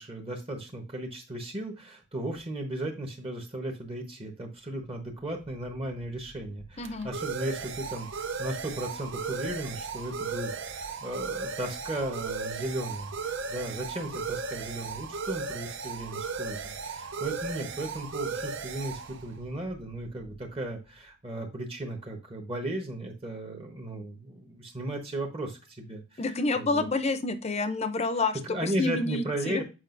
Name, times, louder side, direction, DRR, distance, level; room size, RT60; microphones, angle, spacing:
voice 1, 0.0-26.2 26.6-26.9 28.4-29.6, right 1 dB, 25° right, 3 dB, 1.0 m, -36 dB
sound 1, 5.2-20.6, right 4 dB, 60° right, 0.7 m, -36 dB
voice 2, 6.8-7.1 26.2-29.6, left 3 dB, 30° left, 10 dB, 0.6 m, -29 dB
7.5 x 4.9 x 2.5 m, 0.30 s
head